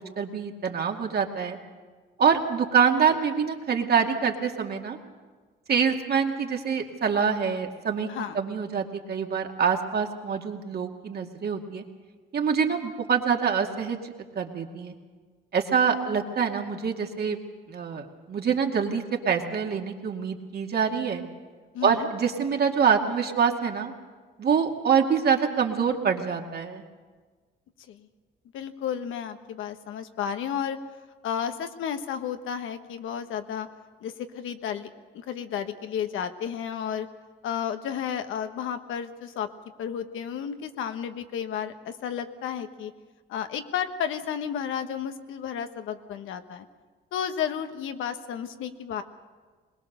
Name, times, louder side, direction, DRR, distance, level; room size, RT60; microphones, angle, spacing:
voice 1, 0.0-1.6 2.2-5.0 5.7-8.1 8.3-11.8 12.3-14.0 14.4-15.0 15.5-17.4 17.7-21.2 21.8-23.9 24.4-26.8, right 6 dB, 55° right, 2 dB, 2.3 m, -25 dB
voice 2, 21.7-22.1 27.9-28.1 28.5-30.8 31.2-33.7 34.0-34.9 35.1-37.1 37.4-39.5 39.8-42.9 43.3-46.6 47.1-49.0, left 8 dB, 85° left, 8 dB, 1.3 m, -32 dB
21.5 x 20.0 x 6.7 m, 1.4 s
cardioid pair, 90°, 20 cm